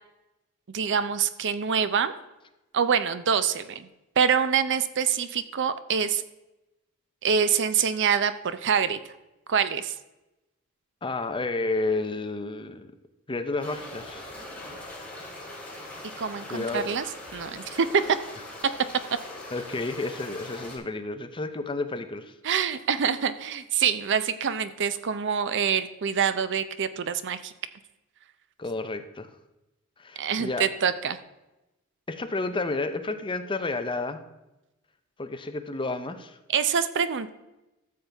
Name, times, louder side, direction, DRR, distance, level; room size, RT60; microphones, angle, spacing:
voice 1, 0.7-2.1 2.7-3.9 4.2-6.2 7.2-9.0 9.5-9.9 16.2-17.0 17.3-18.2 22.4-27.5 30.2-31.2 36.5-37.3, right 7 dB, 55° right, 12 dB, 0.6 m, -25 dB
voice 2, 11.0-12.9 13.3-14.3 16.5-16.8 19.5-22.3 28.6-29.3 30.0-30.7 32.1-34.2 35.2-36.4, left 3 dB, 25° left, 8 dB, 0.6 m, -31 dB
sound 1, 13.6-20.8, left 1 dB, 5° left, 2.5 m, -41 dB
13.0 x 7.3 x 3.4 m, 0.97 s
head